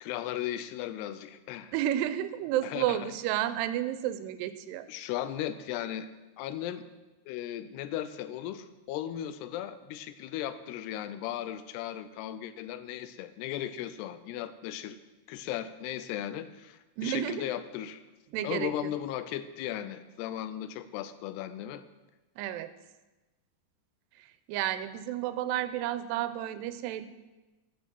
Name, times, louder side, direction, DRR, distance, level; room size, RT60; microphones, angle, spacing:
voice 1, 0.0-1.7 2.6-3.1 4.9-6.1 6.4-6.8 7.3-15.0 15.3-18.0 18.4-21.8, left 11 dB, 90° left, 12 dB, 2.8 m, -36 dB
voice 2, 1.7-4.9 17.0-17.4 18.3-18.9 22.4-22.7 24.2-27.1, right 12 dB, 90° right, 13 dB, 2.8 m, -31 dB
14.0 x 6.9 x 6.0 m, 1.1 s
omnidirectional pair, 4.7 m